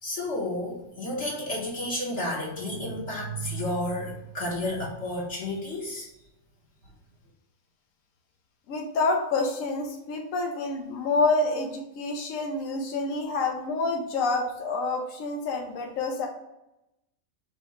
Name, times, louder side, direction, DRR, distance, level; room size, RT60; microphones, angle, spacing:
voice 1, 0.0-6.1, left 1 dB, 60° left, -4 dB, 1.3 m, -31 dB
voice 2, 8.7-16.3, left 3 dB, 85° left, 1 dB, 1.1 m, -28 dB
5.5 x 2.2 x 4.2 m, 0.90 s
omnidirectional pair, 1.4 m